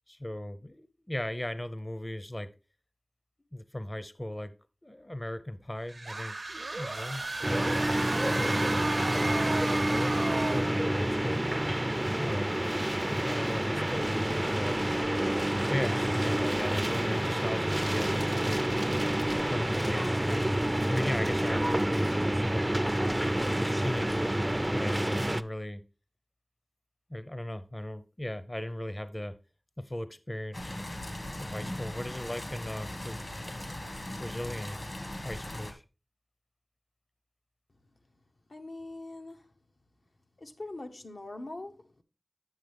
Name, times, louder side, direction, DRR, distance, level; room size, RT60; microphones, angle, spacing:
voice 1, 0.1-2.5 3.5-4.5 4.8-6.4 6.6-7.8 8.3-11.4 12.2-12.6 13.1-14.9 15.7-18.7 19.5-20.6 20.9-22.7 23.6-25.8 27.1-29.4 29.8-30.8 31.4-33.2 34.2-35.8, left 1 dB, 30° left, 0.5 m, -37 dB
sound 1, 5.9-10.8, right 2 dB, 70° right, 0.6 m, -33 dB
sound 2, 7.4-25.4, right 1 dB, 20° right, 0.3 m, -28 dB
sound 3, 30.5-35.7, left 1 dB, 65° left, 1.6 m, -39 dB
voice 2, 38.5-39.5 40.4-42.0, left 2 dB, 85° left, 0.8 m, -42 dB
9.1 x 6.3 x 3.4 m
wide cardioid pair, 55°, 0 cm